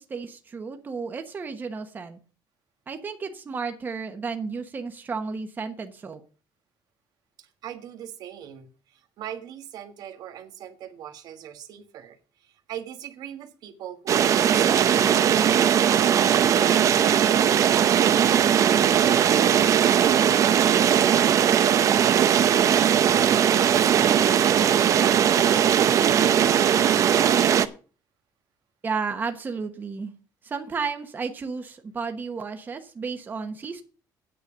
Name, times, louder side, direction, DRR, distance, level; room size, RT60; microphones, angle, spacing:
voice 1, 0.0-2.2 2.9-6.2 28.8-30.1 30.4-33.8, right 5 dB, 25° right, 1.2 m, -32 dB
voice 2, 7.4-17.5 18.0-21.8 22.2-23.7 24.1-24.4 25.0-25.7 26.4-27.0, right 9 dB, 65° right, 1.5 m, -40 dB
sound 1, 14.1-27.7, right 9 dB, 45° right, 0.7 m, -19 dB
9.5 x 6.9 x 6.8 m
cardioid pair, 150°, 7 cm